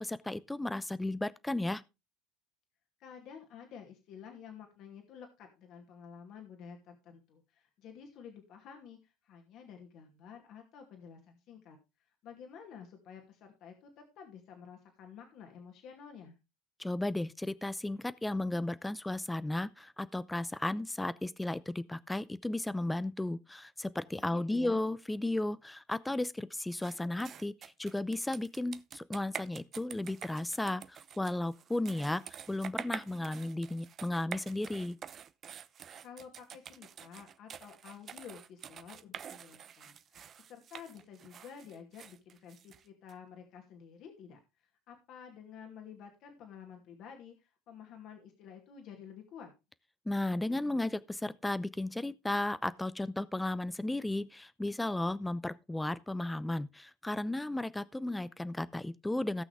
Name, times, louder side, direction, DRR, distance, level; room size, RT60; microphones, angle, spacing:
voice 1, 0.0-1.8 16.8-35.0 50.1-59.4, left 2 dB, 10° left, 0.6 m, -34 dB
voice 2, 3.0-11.8 12.2-16.4 24.3-24.8 36.0-40.2 40.5-49.5, left 7 dB, 60° left, 2.5 m, -51 dB
sound 1, 26.8-43.1, right 8 dB, 45° right, 0.8 m, -47 dB
17.5 x 6.1 x 3.4 m
hypercardioid pair, 80°, 0 cm